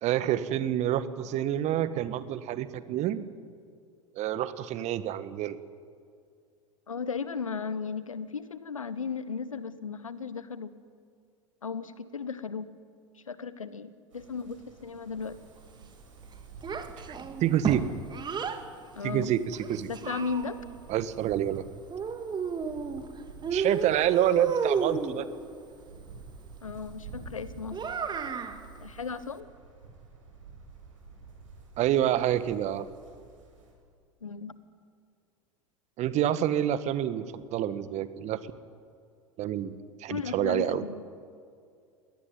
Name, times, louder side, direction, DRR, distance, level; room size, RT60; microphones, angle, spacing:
voice 1, 0.0-3.3 4.1-5.6 17.4-17.8 19.0-19.9 20.9-21.7 23.5-25.2 31.8-32.9 36.0-38.4 39.4-39.7 40.0-40.8, right 11 dB, 45° right, 13 dB, 1.4 m, -27 dB
voice 2, 6.9-10.7 11.6-12.7 13.3-15.4 18.9-19.3 19.9-20.6 26.6-27.8 28.8-29.5 34.2-34.6 40.1-41.0, left 5 dB, 85° left, 15 dB, 1.2 m, -35 dB
sound 1, 14.1-33.7, right 4 dB, 75° right, 7.2 m, -50 dB
Child speech kid speaking, 16.6-18.6 19.5-20.8 21.9-23.1 23.4-25.2 27.7-28.6, right 6 dB, 25° right, 2.2 m, -32 dB
21.5 x 18.5 x 9.5 m, 2.3 s
figure-of-eight pair, 80°, 17 cm